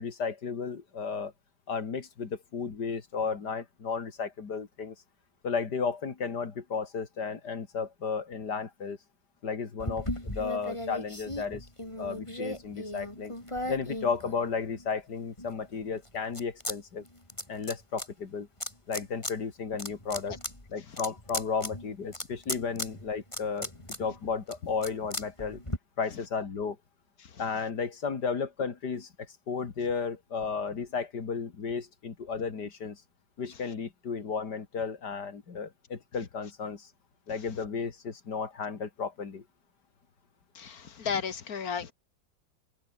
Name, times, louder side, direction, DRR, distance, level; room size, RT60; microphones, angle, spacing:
voice 1, 0.0-1.3 1.7-4.9 5.4-9.0 9.4-11.7 12.0-13.3 13.7-17.0 17.5-18.5 18.9-20.4 20.7-23.7 24.0-25.6 26.0-26.8 27.4-33.0 33.4-36.9 37.3-39.4, left 5 dB, 90° left, 3.0 m, -33 dB
sound 1, 9.8-14.9 15.4-16.8 17.0-18.1 18.6-19.3 19.7-25.8, left 1 dB, 15° left, 5.2 m, -37 dB
voice 2, 40.6-41.9, left 6 dB, 65° left, 2.0 m, -33 dB
omnidirectional pair, 1.7 m